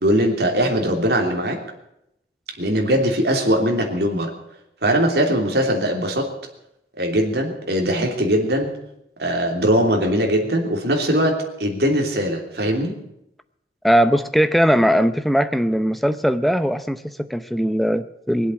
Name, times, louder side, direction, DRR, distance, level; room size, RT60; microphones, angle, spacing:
voice 1, 0.0-1.6 2.6-4.3 4.8-6.3 7.0-8.7 9.2-13.0, equal, 70° right, 2 dB, 3.1 m, -20 dB
voice 2, 13.8-18.5, equal, ahead, 10 dB, 0.6 m, -19 dB
21.5 x 8.1 x 8.3 m, 0.82 s
head